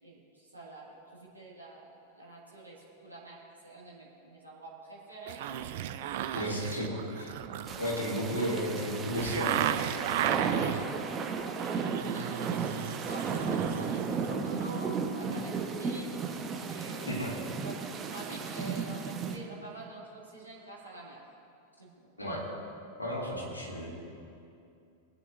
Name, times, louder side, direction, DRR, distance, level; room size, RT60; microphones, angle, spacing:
voice 1, 0.0-7.2 10.7-11.0 11.3-16.1 16.6-21.2 21.8-21.9, right 2 dB, 80° right, -5 dB, 2.1 m, -47 dB
sound 1, 5.3-10.9 11.4-14.3 14.6-14.7, right 11 dB, 50° right, 0.5 m, -35 dB
voice 2, 6.3-6.9 7.2-7.3 7.8-9.7 17.1-17.4 22.2-22.4 23.0-23.9, equal, 80° left, -4 dB, 2.5 m, -33 dB
sound 2, 7.7-19.4, right 5 dB, 25° right, 1.0 m, -34 dB
21.5 x 8.9 x 2.6 m, 2.6 s
figure-of-eight pair, 90°, 0 cm